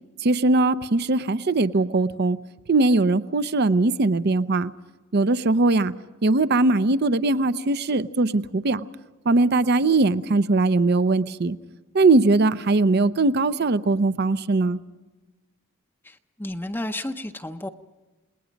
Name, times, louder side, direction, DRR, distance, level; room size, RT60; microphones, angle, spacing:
voice 1, 0.2-2.4 2.7-4.7 5.1-5.9 6.2-8.9 9.3-11.6 11.9-14.8, right 2 dB, 50° right, 14 dB, 0.6 m, -20 dB
voice 2, 16.0-17.7, left 1 dB, 10° left, 7 dB, 0.6 m, -32 dB
28.5 x 20.0 x 5.2 m, 1.2 s
head